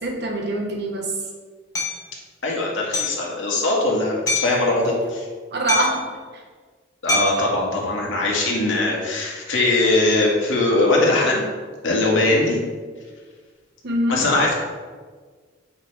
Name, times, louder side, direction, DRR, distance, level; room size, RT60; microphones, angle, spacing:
voice 1, 0.0-1.1 5.5-6.0 6.3-6.4 13.8-14.3, right 1 dB, 60° right, 0 dB, 1.4 m, -24 dB
Hammer, 1.7-2.0 2.9-3.2 4.3-4.6 5.7-6.1 7.1-7.5, left 3 dB, 20° left, 1.4 m, -24 dB
voice 2, 2.4-4.2 4.4-5.3 7.0-11.4 11.8-12.6 14.1-14.5, left 2 dB, 75° left, -2 dB, 1.9 m, -20 dB
8.9 x 5.9 x 3.4 m, 1.5 s
head